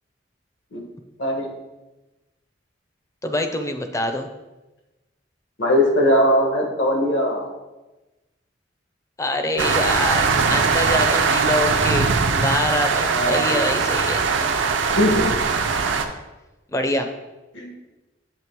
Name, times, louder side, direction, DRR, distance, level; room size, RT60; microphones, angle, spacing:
voice 1, 1.2-1.5 5.6-7.5 13.1-13.7 15.0-15.3 17.5-17.7, equal, 75° left, 1 dB, 1.3 m, -20 dB
voice 2, 3.2-4.3 9.2-12.1 12.4-14.3 16.7-17.1, left 1 dB, 15° left, 6 dB, 0.5 m, -25 dB
sound 1, 9.6-16.1, right 5 dB, 85° right, 0.6 m, -21 dB
7.6 x 3.2 x 4.5 m, 1.1 s
head